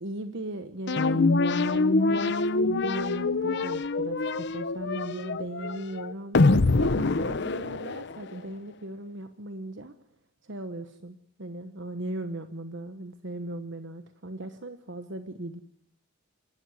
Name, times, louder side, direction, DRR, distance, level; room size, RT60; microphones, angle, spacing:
voice 1, 0.0-6.5 6.8-9.9 10.4-15.6, right 1 dB, 60° right, 9 dB, 1.2 m, -38 dB
sound 1, 0.9-8.4, left 3 dB, 55° left, 0.8 m, -25 dB
27.0 x 13.0 x 9.7 m, 0.75 s
head